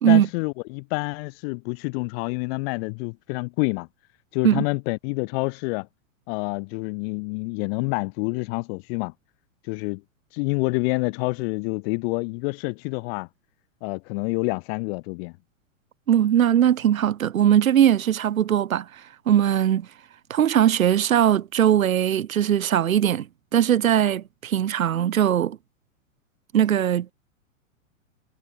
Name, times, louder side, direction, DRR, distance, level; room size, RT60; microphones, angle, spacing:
voice 1, 0.1-3.9 4.3-5.9 6.3-9.1 9.6-10.0 10.3-13.3 13.8-15.3, left 31 dB, 50° left, 2.8 m, -27 dB
voice 2, 16.1-18.9 19.3-19.9 20.3-23.3 23.5-25.6 26.5-27.1, right 10 dB, 90° right, 1.2 m, -20 dB
hypercardioid pair, 120°, 40 cm